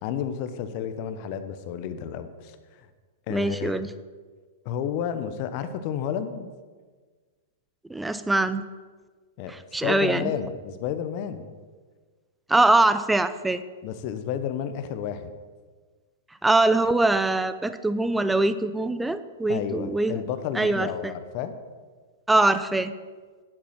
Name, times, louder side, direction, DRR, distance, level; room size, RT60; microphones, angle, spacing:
voice 1, 0.0-2.6 3.3-3.8 4.6-6.5 9.4-9.5 9.8-11.5 13.8-15.3 19.5-21.5, left 8 dB, 45° left, 10 dB, 1.1 m, -31 dB
voice 2, 3.3-3.9 7.9-8.6 9.5-10.3 12.5-13.6 16.4-20.1 20.5-21.1 22.3-22.9, right 2 dB, 5° right, 12 dB, 0.6 m, -23 dB
10.5 x 8.5 x 5.9 m, 1.5 s
hypercardioid pair, 110°, 0 cm